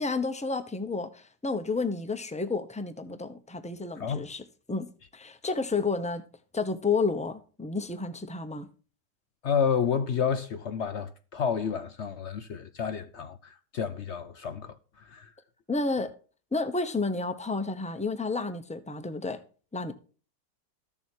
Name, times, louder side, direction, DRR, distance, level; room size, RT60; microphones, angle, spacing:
voice 1, 0.0-4.9 5.1-6.2 6.5-8.7 15.7-16.1 16.5-19.4 19.7-19.9, left 3 dB, 5° left, 0.6 m, -31 dB
voice 2, 9.4-15.3, left 7 dB, 65° left, 0.7 m, -30 dB
13.5 x 7.1 x 4.5 m
omnidirectional pair, 1.8 m